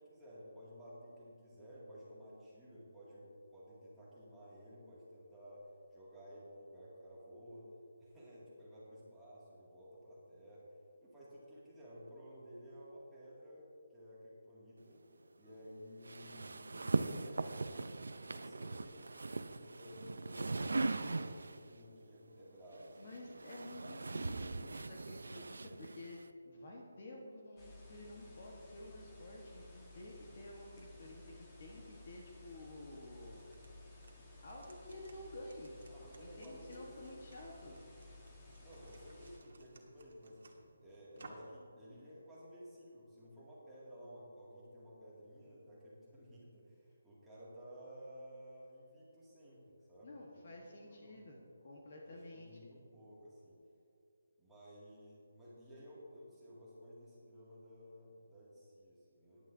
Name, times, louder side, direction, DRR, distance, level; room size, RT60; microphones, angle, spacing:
voice 1, 0.0-5.7 5.9-7.7 8.0-10.7 11.0-15.0 15.3-17.9 18.3-23.5 24.1-24.9 35.9-36.9 37.3-37.4 38.6-40.4 40.8-49.6 49.9-51.4 52.0-53.6 54.4-59.5, equal, 5° right, -11 dB, 2.3 m, -55 dB
sound 1, 16.0-21.7 22.7-26.3, right 3 dB, 85° right, 0.5 m, -40 dB
voice 2, 22.9-33.4 34.4-37.8 50.0-52.6, left 1 dB, 40° left, -2 dB, 1.3 m, -51 dB
sound 2, 27.6-39.4, left 2 dB, 15° left, 1.4 m, -56 dB
sound 3, 33.3-41.6, right 2 dB, 60° right, 1.5 m, -61 dB
16.5 x 10.5 x 2.7 m, 2.7 s
hypercardioid pair, 170°, 0 cm